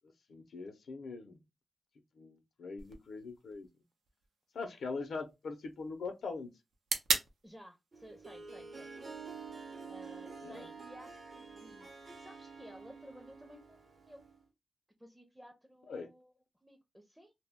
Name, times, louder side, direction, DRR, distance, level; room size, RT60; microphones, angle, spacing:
voice 1, 0.3-1.4 2.2-3.7 4.5-6.5 10.4-10.7 15.9-16.1, left 4 dB, 80° left, 0.5 m, -42 dB
sound 1, 2.8-10.8, right 4 dB, 85° right, 0.5 m, -42 dB
voice 2, 7.4-8.9 9.9-13.8 14.1-14.2 15.0-16.3 16.6-17.3, equal, 5° right, 0.5 m, -55 dB
Harp, 7.9-14.4, right 4 dB, 50° right, 0.7 m, -49 dB
2.1 x 2.0 x 3.5 m
cardioid pair, 80°, 0 cm